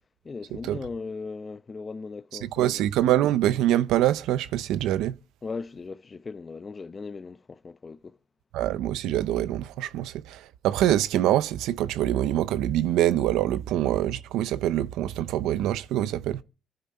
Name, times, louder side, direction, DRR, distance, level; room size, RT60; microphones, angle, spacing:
voice 1, 0.2-2.8 5.4-8.2, left 4 dB, 30° left, 0.7 m, -38 dB
voice 2, 2.4-5.2 8.5-16.4, right 12 dB, 90° right, 0.7 m, -25 dB
24.5 x 11.0 x 4.3 m
cardioid pair, 100°, 0 cm